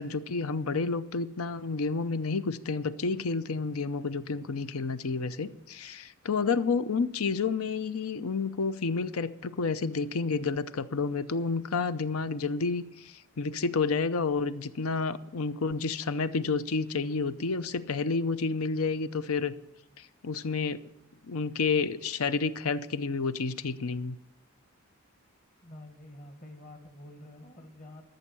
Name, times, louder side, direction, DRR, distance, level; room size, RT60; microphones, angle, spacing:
voice 1, 0.0-19.5 20.0-20.8 21.3-24.2, left 4 dB, 85° left, 14 dB, 0.7 m, -30 dB
voice 2, 25.6-28.1, left 1 dB, 40° left, 6 dB, 1.6 m, -48 dB
13.5 x 6.5 x 8.5 m, 0.90 s
head